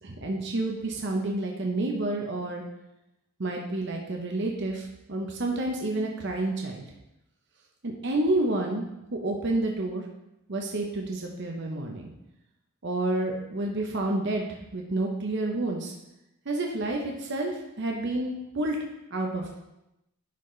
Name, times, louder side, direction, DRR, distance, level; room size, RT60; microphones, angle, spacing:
voice 1, 0.0-2.6 3.4-6.9 7.8-8.9 9.1-10.0 10.5-12.1 12.8-14.5 14.7-15.9 16.5-18.8 19.1-19.6, right 2 dB, 50° right, 0 dB, 0.8 m, -29 dB
10.5 x 4.2 x 3.2 m, 0.89 s
head